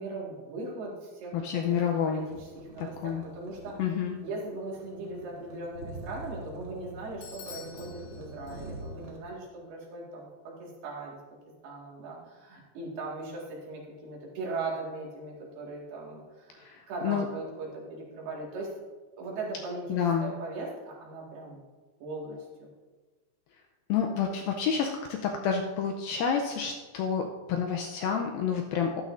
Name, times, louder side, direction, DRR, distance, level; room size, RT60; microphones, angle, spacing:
voice 1, 0.0-1.8 2.0-3.8 4.2-11.2 11.6-18.7 19.2-21.6 22.0-22.7, right 2 dB, 70° right, -3 dB, 3.9 m, -39 dB
voice 2, 1.3-2.3 2.8-3.2 3.8-4.2 16.6-17.3 19.9-20.3 23.9-29.0, left 7 dB, 85° left, 3 dB, 2.1 m, -29 dB
sound 1, 2.1-9.2, right 2 dB, 50° right, 1.3 m, -45 dB
Bell / Doorbell, 7.2-9.1, left 7 dB, 65° left, 2.6 m, -48 dB
12.5 x 11.5 x 2.6 m, 1.3 s
omnidirectional pair, 4.8 m